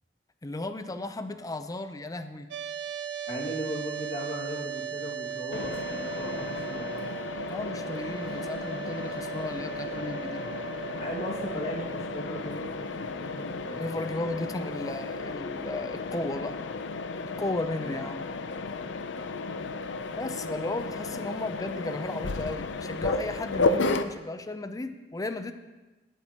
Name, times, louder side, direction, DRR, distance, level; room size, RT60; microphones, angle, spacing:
voice 1, 0.4-2.5 7.5-10.4 13.8-16.6 17.4-18.2 20.2-25.5, left 2 dB, 20° left, 9 dB, 0.5 m, -35 dB
sound 1, 2.5-12.6, right 8 dB, 65° right, 0.4 m, -38 dB
voice 2, 3.3-6.9 11.0-14.0 17.2-17.3 17.8-18.0, equal, 35° left, -3 dB, 2.1 m, -37 dB
Mechanisms, 5.5-24.0, left 3 dB, 80° left, 0.6 m, -33 dB
18.5 x 8.1 x 2.9 m, 1.2 s
head